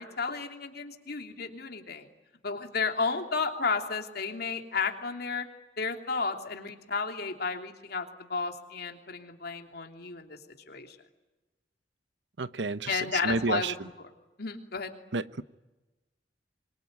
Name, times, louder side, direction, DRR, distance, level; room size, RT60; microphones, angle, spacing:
voice 1, 0.0-2.0 2.4-5.5 5.8-10.4 10.7-11.0 12.9-13.7 14.4-14.9, left 4 dB, 60° left, 4 dB, 3.0 m, -32 dB
voice 2, 12.4-13.9 15.1-15.4, right 3 dB, 80° right, 15 dB, 0.9 m, -31 dB
26.0 x 23.0 x 9.4 m, 1.1 s
head